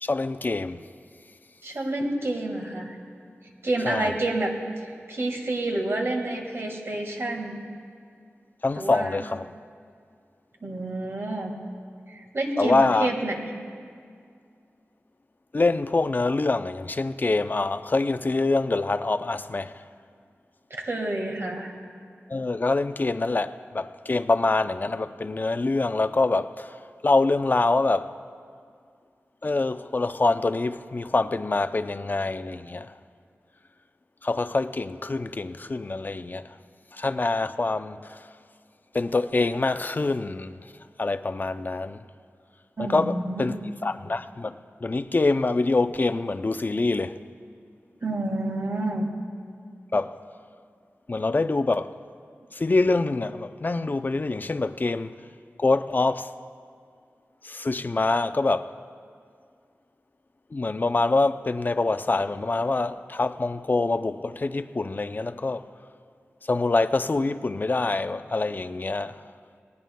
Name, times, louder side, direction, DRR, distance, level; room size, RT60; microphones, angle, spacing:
voice 1, 0.0-0.8 3.8-4.1 8.6-9.5 12.6-13.1 15.5-19.7 22.3-26.7 27.0-28.1 29.4-32.9 34.2-36.5 36.9-38.0 38.9-40.5 41.0-42.0 42.8-47.2 49.9-50.1 51.1-51.9 52.5-55.1 55.6-56.3 57.4-58.7 60.5-65.6 66.5-69.2, left 3 dB, 40° left, 0.4 m, -25 dB
voice 2, 1.6-2.9 3.6-4.5 5.1-7.6 8.7-9.2 10.6-11.6 12.1-13.4 20.7-21.7 42.8-43.5 48.0-49.1, right 2 dB, 60° right, 1.7 m, -28 dB
19.0 x 18.5 x 2.2 m
wide cardioid pair, 75°, 5 cm